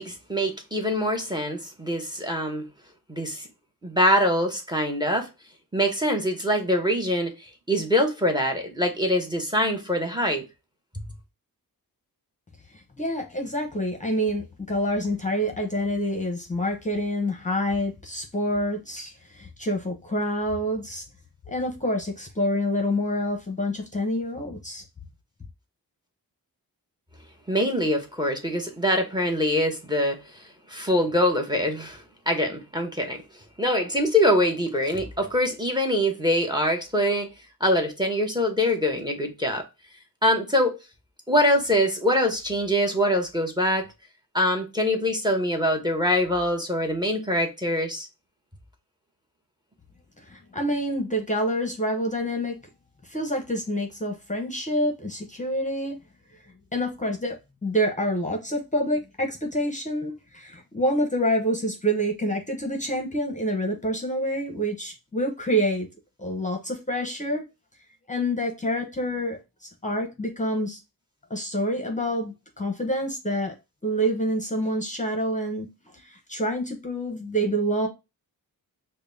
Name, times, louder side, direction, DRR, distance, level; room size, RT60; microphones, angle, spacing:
voice 1, 0.0-2.7 3.1-3.5 3.8-5.3 5.7-10.4 27.5-30.2 30.7-33.2 33.6-37.3 37.6-39.6 40.2-40.8 41.3-43.8 44.3-48.1, equal, 10° right, 0.9 m, -24 dB
voice 2, 12.7-21.0 21.5-24.8 50.2-52.6 53.0-56.0 56.3-56.4 56.7-65.9 66.2-67.4 68.1-70.8 71.3-73.5 73.8-75.7 75.9-77.9, equal, 20° left, 0.8 m, -27 dB
5.1 x 2.2 x 2.6 m
wide cardioid pair, 100°, 37 cm